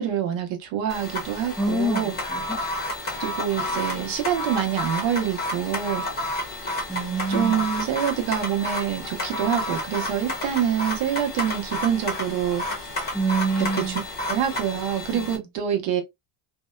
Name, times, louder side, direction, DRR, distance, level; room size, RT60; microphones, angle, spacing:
voice 1, 0.0-2.2 3.2-6.1 7.3-12.6 13.6-14.0 14.3-16.0, right 9 dB, 65° right, 1.0 m, -26 dB
sound 1, 0.9-15.4, left 1 dB, 20° left, 0.8 m, -31 dB
voice 2, 1.6-2.6 6.9-7.6 13.1-14.0 15.2-15.5, right 2 dB, ahead, 0.3 m, -26 dB
2.7 x 2.1 x 2.2 m
cardioid pair, 140°, 48 cm